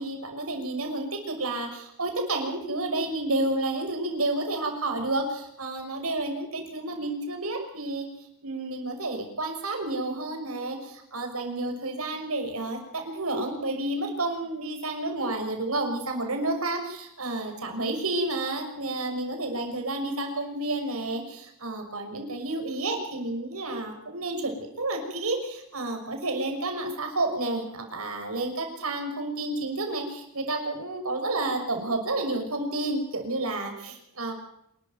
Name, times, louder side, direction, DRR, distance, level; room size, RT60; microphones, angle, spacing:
voice 1, 0.0-34.3, right 2 dB, 75° right, 4 dB, 6.1 m, -30 dB
27.0 x 13.0 x 9.4 m, 0.77 s
head